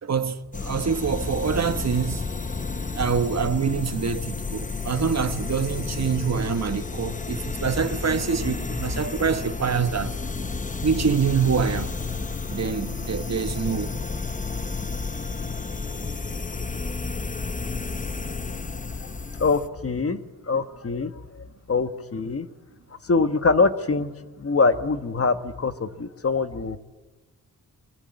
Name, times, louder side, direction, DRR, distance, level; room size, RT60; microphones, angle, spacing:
voice 1, 0.0-2.2 2.9-10.2 10.8-12.0 12.5-13.9, right 6 dB, 45° right, 1.3 m, -25 dB
sound 1, 0.5-19.7, left 4 dB, 20° left, 0.9 m, -31 dB
voice 2, 19.4-20.2 20.5-22.5 23.0-24.1 24.4-26.8, left 4 dB, 40° left, 1.3 m, -24 dB
25.0 x 24.0 x 9.5 m
wide cardioid pair, 175°, 36 cm